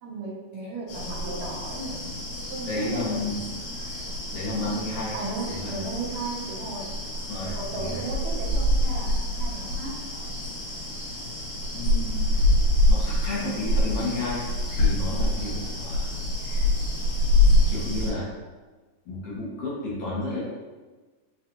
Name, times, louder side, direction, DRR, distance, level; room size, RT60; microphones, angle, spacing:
voice 1, 0.0-2.0 2.5-3.3 5.1-6.9 7.4-10.0, right 2 dB, 70° right, -4 dB, 1.4 m, -35 dB
sound 1, 0.9-18.1, left 1 dB, 85° left, 3.0 m, -26 dB
voice 2, 2.7-3.4 4.3-5.8 7.3-8.0 11.7-12.3 12.9-16.1 16.4-16.6 17.3-18.3 19.0-20.5, left 2 dB, 60° left, -7 dB, 1.7 m, -32 dB
6.3 x 2.3 x 2.9 m, 1.3 s
omnidirectional pair, 3.4 m